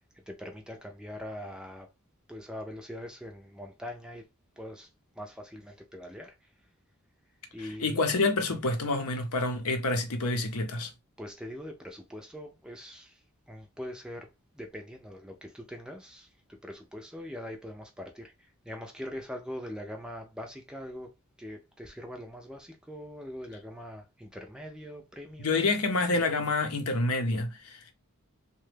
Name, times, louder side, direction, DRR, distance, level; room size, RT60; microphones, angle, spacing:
voice 1, 0.1-1.9 2.3-4.3 4.6-4.9 5.2-6.5 7.5-8.1 11.2-21.1 21.4-25.6, equal, 5° right, 0.5 m, -42 dB
voice 2, 7.6-10.9 25.4-27.9, left 3 dB, 80° left, 0.7 m, -28 dB
2.9 x 2.3 x 3.2 m
head